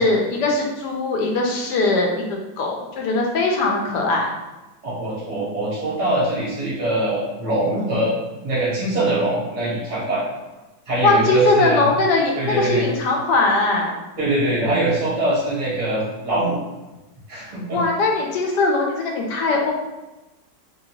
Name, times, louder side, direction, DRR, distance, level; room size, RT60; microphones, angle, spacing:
voice 1, 0.0-2.3 2.6-4.3 11.0-13.9 17.5-19.7, left 3 dB, 75° left, 1 dB, 1.2 m, -20 dB
voice 2, 4.8-8.1 8.4-10.2 10.9-11.8 12.4-12.8 14.2-16.6 17.3-17.8, right 2 dB, 40° right, -8 dB, 0.6 m, -23 dB
2.9 x 2.8 x 2.8 m, 1.1 s
omnidirectional pair, 1.9 m